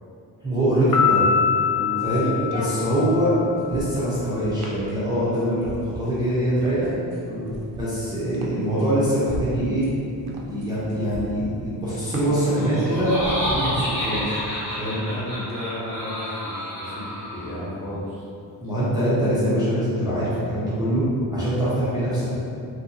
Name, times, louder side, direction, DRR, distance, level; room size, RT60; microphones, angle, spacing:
voice 1, 0.4-1.3 2.0-3.4 3.7-6.9 7.7-9.9 10.4-14.4 14.8-15.0 18.6-21.1 21.3-22.4, right 1 dB, 10° right, -12 dB, 0.5 m, -23 dB
Piano, 0.9-3.5, left 7 dB, 60° left, 0.5 m, -23 dB
sound 1, 1.3-14.6, right 2 dB, 75° right, 0.5 m, -38 dB
voice 2, 1.7-2.1 7.2-7.5 14.8-18.2 21.3-21.6, left 1 dB, 35° left, -9 dB, 0.8 m, -34 dB
Laughter, 12.4-17.6, equal, 5° left, 0.9 m, -30 dB
2.8 x 2.6 x 2.6 m, 2.6 s
cardioid pair, 145°, 37 cm